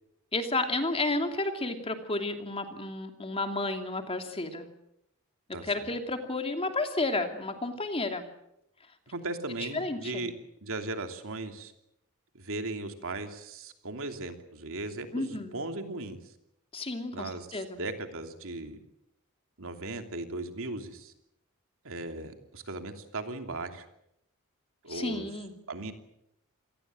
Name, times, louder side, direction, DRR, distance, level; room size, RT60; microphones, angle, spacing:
voice 1, 0.3-4.7 5.6-8.3 9.7-10.3 15.1-15.6 16.7-17.8 24.9-25.5, left 2 dB, 25° left, 6 dB, 2.8 m, -32 dB
voice 2, 5.5-5.9 9.1-10.3 10.6-11.7 12.3-16.2 17.1-18.8 19.6-21.1 21.8-23.9 24.8-25.3 25.7-25.9, right 2 dB, 65° right, 6 dB, 3.0 m, -37 dB
27.5 x 19.0 x 7.7 m, 0.78 s
head